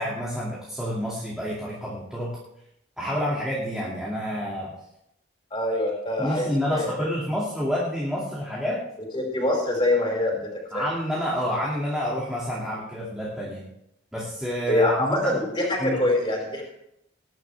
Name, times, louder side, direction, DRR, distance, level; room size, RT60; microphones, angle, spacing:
voice 1, 0.0-2.3 3.0-4.7 6.2-8.8 10.3-10.4 10.7-13.6 14.1-15.4 15.8-16.0, equal, 5° right, -7 dB, 2.4 m, -28 dB
voice 2, 5.5-7.1 9.1-10.4 10.7-10.9 14.7-16.6, left 1 dB, 25° left, -1 dB, 4.6 m, -24 dB
20.0 x 11.0 x 3.5 m, 0.79 s
head